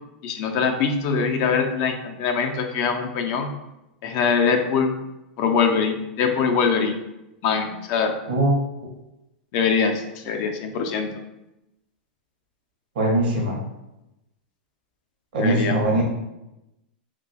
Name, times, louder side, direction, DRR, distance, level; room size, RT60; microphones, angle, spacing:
voice 1, 0.2-3.5 4.0-4.9 5.4-7.0 7.4-8.2 9.5-11.1 15.4-16.0, left 5 dB, 45° left, 5 dB, 0.5 m, -23 dB
voice 2, 8.3-8.6 13.0-13.6 15.3-16.0, right 1 dB, 70° right, -1 dB, 0.8 m, -21 dB
2.3 x 2.2 x 3.9 m, 0.92 s
hypercardioid pair, 135°, 5 cm